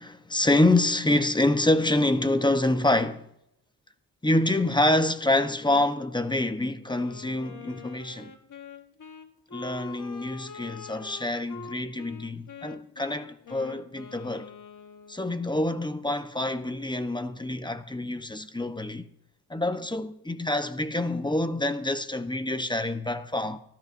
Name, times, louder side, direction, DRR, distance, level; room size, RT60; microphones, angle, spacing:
voice 1, 0.0-3.3 4.2-8.3 9.5-14.5 15.1-19.1 19.5-23.6, left 1 dB, 10° left, 0.9 m, -26 dB
Wind instrument woodwind instrument, 6.9-15.3, left 5 dB, 45° left, 1.3 m, -45 dB
29.5 x 13.5 x 2.6 m
cardioid pair, 85°, 41 cm